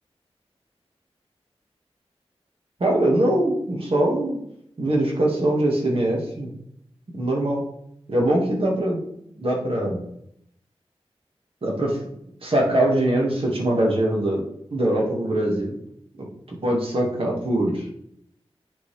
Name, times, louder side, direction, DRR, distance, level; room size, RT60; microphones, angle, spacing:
voice 1, 2.8-4.4 4.8-6.5 7.1-7.7 8.1-9.0 9.4-10.0 11.6-12.0 12.4-14.4 14.7-15.8 16.2-17.9, right 1 dB, 60° right, -2 dB, 1.8 m, -22 dB
9.5 x 3.9 x 3.3 m, 0.74 s
wide cardioid pair, 90°, 11 cm